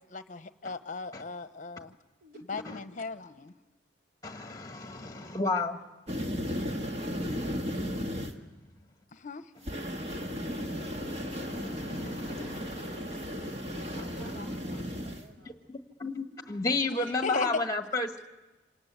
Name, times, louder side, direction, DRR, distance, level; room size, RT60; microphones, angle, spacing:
voice 1, 0.0-1.9 2.5-3.5 9.1-9.4 16.8-17.6, left 4 dB, 45° left, 11 dB, 0.9 m, -36 dB
voice 2, 4.2-5.8 10.2-14.3 15.7-18.1, left 3 dB, 20° left, 6 dB, 1.5 m, -34 dB
voice 3, 4.8-5.1 14.0-15.6, right 1 dB, 50° right, 1 dB, 3.2 m, -53 dB
sound 1, 6.1-8.3 9.7-15.2, equal, 35° right, 1.6 m, -35 dB
27.0 x 18.5 x 8.2 m, 1.1 s
head